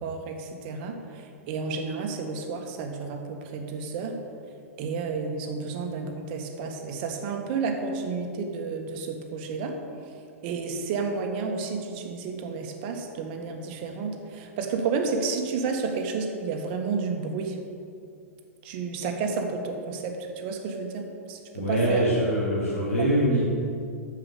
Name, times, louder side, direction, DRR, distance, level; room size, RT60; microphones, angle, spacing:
voice 1, 0.0-4.2 4.8-9.8 10.4-17.6 18.6-22.0, right 4 dB, 45° right, 4 dB, 1.6 m, -31 dB
voice 2, 21.5-23.4, right 1 dB, 65° left, -5 dB, 2.7 m, -23 dB
10.5 x 7.4 x 6.8 m, 2.5 s
figure-of-eight pair, 100°, 8 cm